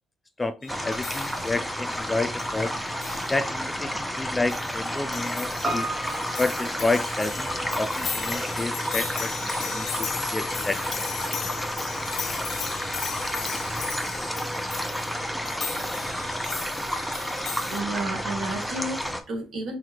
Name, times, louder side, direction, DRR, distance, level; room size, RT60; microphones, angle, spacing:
voice 1, 0.4-2.7 3.3-5.9 6.4-11.1, left 3 dB, 20° left, 0.5 m, -30 dB
sound 1, 0.6-17.8, left 7 dB, 85° left, 1.1 m, -37 dB
sound 2, 0.7-19.2, equal, ahead, 0.9 m, -31 dB
Piano, 5.6-10.1 10.4-10.5, right 2 dB, 20° right, 1.8 m, -36 dB
voice 2, 17.6-19.8, right 2 dB, 65° right, 2.3 m, -32 dB
5.8 x 2.7 x 3.2 m
cardioid pair, 90°, 0 cm